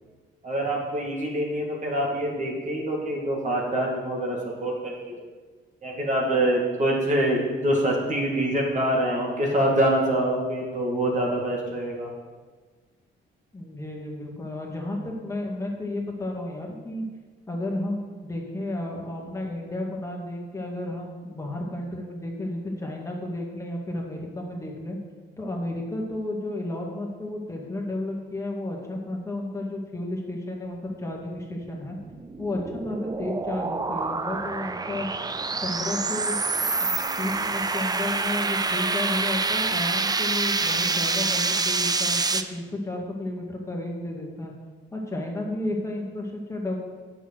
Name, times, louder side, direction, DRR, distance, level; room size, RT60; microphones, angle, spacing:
voice 1, 0.4-5.2 5.8-12.1, right 1 dB, 40° right, -2 dB, 2.2 m, -25 dB
voice 2, 13.5-17.0 17.5-25.0 25.4-32.0 32.4-35.1 35.6-36.4 36.8-44.5 44.9-46.8, left 1 dB, 15° left, -1 dB, 2.1 m, -32 dB
sound 1, 31.8-42.4, right 3 dB, 20° right, 0.5 m, -27 dB
7.8 x 6.4 x 6.4 m, 1.4 s
cardioid pair, 90°, 20 cm